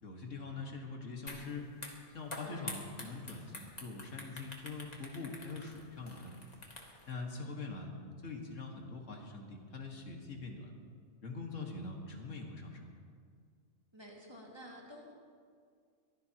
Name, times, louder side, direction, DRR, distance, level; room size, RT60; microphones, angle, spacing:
voice 1, 0.0-1.7 2.1-6.3 7.1-7.9 8.2-10.7 11.2-12.9, left 3 dB, 70° left, 1 dB, 2.0 m, -43 dB
sound 1, 1.3-1.4 1.7-7.1, left 2 dB, 30° left, 1.8 m, -47 dB
voice 2, 2.4-2.7 7.3-7.6 13.9-15.1, equal, 20° right, -3 dB, 2.2 m, -51 dB
22.5 x 15.0 x 3.0 m, 2.1 s
omnidirectional pair, 1.3 m